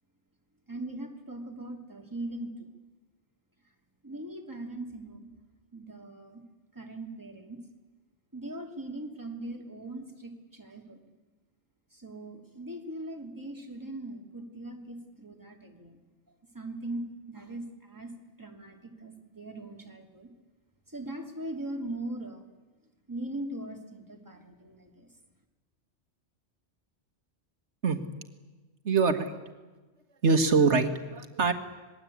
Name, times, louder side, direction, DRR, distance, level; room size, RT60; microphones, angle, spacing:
voice 1, 0.7-2.7 4.0-5.3 5.7-6.4 6.7-7.6 8.3-11.0 11.9-16.0 16.5-18.1 18.4-20.3 20.9-22.4 23.1-25.1, right 1 dB, 15° right, 2 dB, 2.9 m, -40 dB
voice 2, 28.8-29.3 30.2-31.5, right 4 dB, 70° right, 8 dB, 2.0 m, -24 dB
26.5 x 21.0 x 8.6 m, 1.2 s
omnidirectional pair, 1.2 m